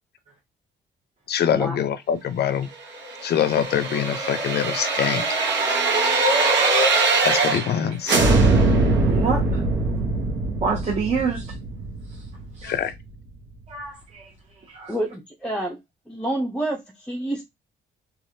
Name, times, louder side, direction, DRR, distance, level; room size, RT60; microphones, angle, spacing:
voice 1, 1.3-2.7 3.2-5.2 7.2-8.2 12.6-12.9, left 9 dB, 55° left, 0.5 m, -24 dB
sound 1, 3.0-7.8 8.1-12.9 13.3-13.4, right 3 dB, 70° right, 0.9 m, -22 dB
voice 2, 9.0-9.4 10.6-11.4 12.6-12.7 13.7-14.2 14.7-14.9, right 5 dB, 35° right, 1.0 m, -26 dB
voice 3, 14.9-15.8 16.1-17.4, right 1 dB, 5° left, 0.6 m, -28 dB
3.1 x 2.4 x 2.7 m
cardioid pair, 90°, 20 cm